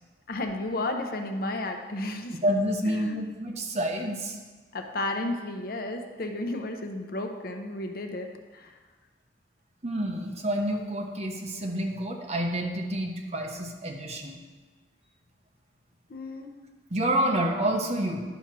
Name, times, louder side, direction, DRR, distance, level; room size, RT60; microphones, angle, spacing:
voice 1, 0.3-2.4 2.9-3.2 4.7-8.7 16.1-16.6, left 2 dB, 55° left, 5 dB, 0.8 m, -33 dB
voice 2, 2.4-4.4 9.8-14.4 16.9-18.2, right 1 dB, 40° right, 2 dB, 1.0 m, -28 dB
10.5 x 4.4 x 6.0 m, 1.3 s
head